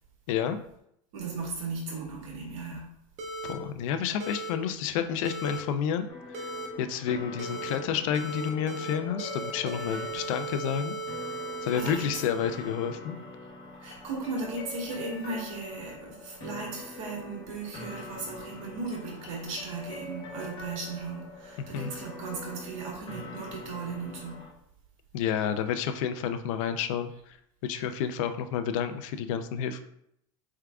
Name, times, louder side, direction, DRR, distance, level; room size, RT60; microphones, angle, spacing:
voice 1, 0.3-0.6 3.4-6.5 6.8-11.0 11.6-13.2 21.6-21.9 25.1-27.4 27.6-29.8, left 8 dB, 65° left, 9 dB, 0.5 m, -30 dB
voice 2, 1.1-2.9 9.8-10.2 11.7-12.1 13.8-24.4, right 3 dB, 65° right, -1 dB, 1.6 m, -37 dB
sound 1, 3.2-3.5 4.2-4.5 5.2-5.6 6.3-6.7 7.4-7.8 8.1-8.9 9.2-12.9, right 2 dB, 40° right, 0.9 m, -37 dB
sound 2, 6.1-24.5, left 2 dB, 30° left, 1.0 m, -44 dB
4.5 x 3.6 x 2.3 m, 0.74 s
hypercardioid pair, 115°, 18 cm